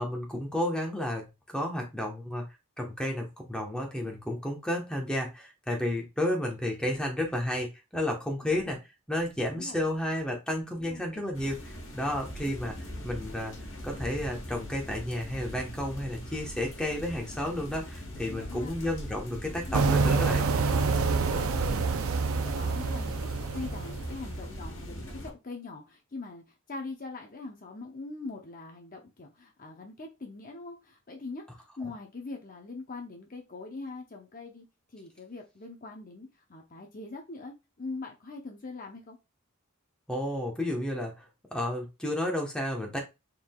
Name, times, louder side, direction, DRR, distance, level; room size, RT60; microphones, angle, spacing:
voice 1, 0.0-2.4 2.8-8.8 9.1-12.8 13.0-13.6 13.8-20.4 21.5-21.8 31.8-31.9 40.1-41.2 41.5-43.0, left 1 dB, 5° left, 0 dB, 1.1 m, -32 dB
voice 2, 9.5-9.8 10.8-11.2 18.1-18.8 19.6-20.8 21.1-23.3 23.5-26.4 26.7-34.6 34.9-39.2, left 3 dB, 40° left, 2 dB, 0.8 m, -42 dB
sound 1, 11.3-25.3, equal, 65° left, 1.6 m, -41 dB
sound 2, 19.7-24.5, right 4 dB, 80° right, 0.5 m, -27 dB
4.8 x 3.8 x 2.3 m, 0.25 s
head